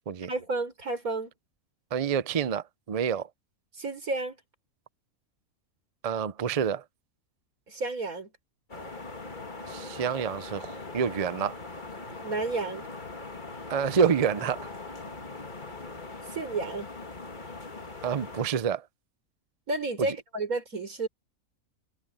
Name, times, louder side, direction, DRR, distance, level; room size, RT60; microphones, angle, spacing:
voice 1, 0.3-1.3 3.7-4.4 7.7-8.3 12.2-12.9 16.3-16.9 19.7-21.1, right 3 dB, 75° right, 4.8 m, -31 dB
voice 2, 1.9-3.3 6.0-6.8 9.7-11.6 13.7-14.7 18.0-18.8 20.0-20.1, right 7 dB, 45° right, 0.4 m, -28 dB
sound 1, 8.7-18.5, left 3 dB, 35° left, 2.3 m, -41 dB
omnidirectional pair, 1.5 m